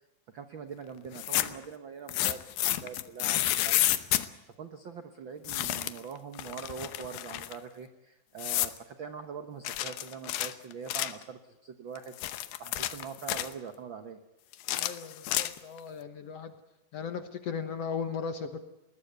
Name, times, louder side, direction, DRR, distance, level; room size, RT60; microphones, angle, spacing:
voice 1, 0.3-4.0 4.5-12.2 12.6-14.2, right 6 dB, 80° right, 8 dB, 1.1 m, -43 dB
sound 1, 1.1-1.7 2.1-4.3 5.5-6.1 6.4-7.6 8.4-8.8 9.7-11.2 12.0-13.5 14.5-15.8, left 14 dB, 85° left, 2.7 m, -30 dB
voice 2, 14.8-16.6 16.9-18.6, left 6 dB, 60° left, 8 dB, 1.8 m, -37 dB
20.5 x 19.0 x 8.1 m, 0.97 s
omnidirectional pair, 4.0 m